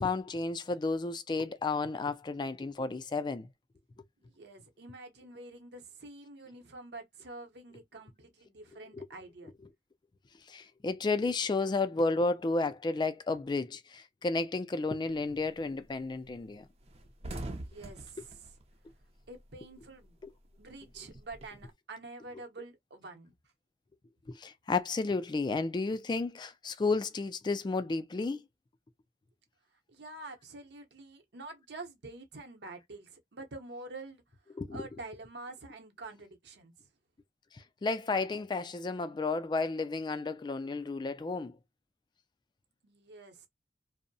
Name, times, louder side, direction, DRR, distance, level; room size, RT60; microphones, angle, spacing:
voice 1, 0.0-3.5 8.9-9.1 10.5-16.7 18.2-18.3 20.2-20.3 24.3-28.4 34.6-34.9 37.5-41.5, left 3 dB, 25° left, 0.3 m, -32 dB
voice 2, 4.2-9.5 17.4-18.5 19.3-20.2 20.6-23.3 29.9-36.7 42.8-43.5, right 2 dB, 65° right, 0.8 m, -47 dB
sound 1, 15.1-15.5 15.9-16.0 16.3-16.4 16.7-19.7 20.0-21.7, right 1 dB, 35° right, 0.5 m, -44 dB
2.7 x 2.0 x 2.6 m
head